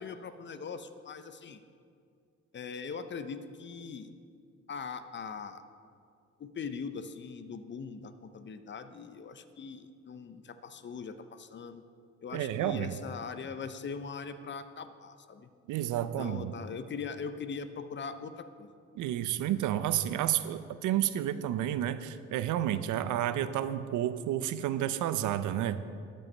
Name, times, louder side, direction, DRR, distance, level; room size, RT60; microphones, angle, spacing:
voice 1, 0.0-1.6 2.5-4.1 4.7-5.6 6.4-11.8 12.2-15.5 16.2-18.7, left 5 dB, 40° left, 11 dB, 0.6 m, -41 dB
voice 2, 12.3-13.0 15.7-16.5 19.0-25.8, right 11 dB, 80° right, 12 dB, 0.5 m, -31 dB
12.5 x 5.5 x 5.4 m, 2.3 s
cardioid pair, 90°, 30 cm